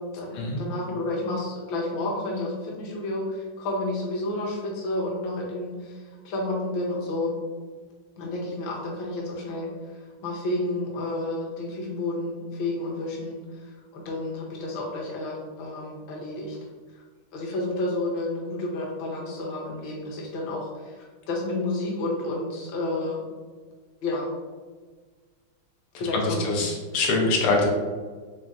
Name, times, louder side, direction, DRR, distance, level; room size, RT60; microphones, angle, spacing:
voice 1, 0.0-7.4 8.2-16.6 17.3-23.3 24.0-24.3 25.9-26.5, left 2 dB, 70° left, -2 dB, 1.5 m, -31 dB
voice 2, 25.9-27.7, left 3 dB, 85° left, 0 dB, 1.6 m, -24 dB
4.1 x 3.4 x 2.4 m, 1.4 s
omnidirectional pair, 2.4 m